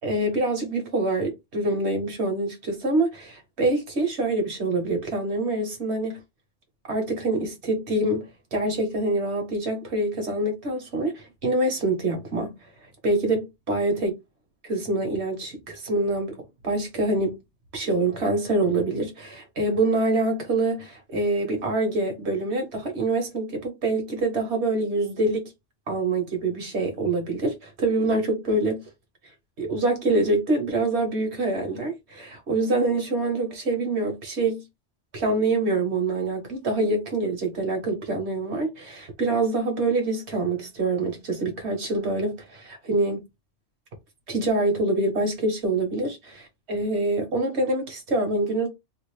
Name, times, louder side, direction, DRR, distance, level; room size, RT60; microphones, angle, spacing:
voice 1, 0.0-6.2 6.9-8.2 8.5-12.5 13.0-14.1 14.7-16.4 16.6-17.3 17.7-25.5 25.9-28.8 29.6-34.6 35.1-43.2 44.3-48.7, right 2 dB, 65° right, 1.5 m, -25 dB
3.1 x 2.5 x 3.2 m
omnidirectional pair, 1.2 m